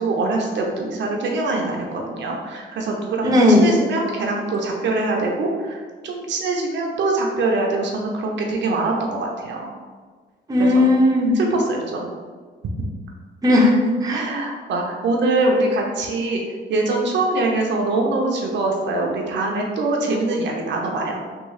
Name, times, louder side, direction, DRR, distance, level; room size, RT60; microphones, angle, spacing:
voice 1, 0.0-5.8 6.0-9.7 10.6-10.8 11.3-12.1 12.8-12.9 14.1-16.4 16.7-21.2, right 2 dB, 65° right, 0 dB, 0.6 m, -23 dB
voice 2, 3.2-3.7 10.5-11.4 13.4-14.2, left 1 dB, 20° right, -2 dB, 0.6 m, -16 dB
3.6 x 2.4 x 3.1 m, 1.5 s
cardioid pair, 90°, 20 cm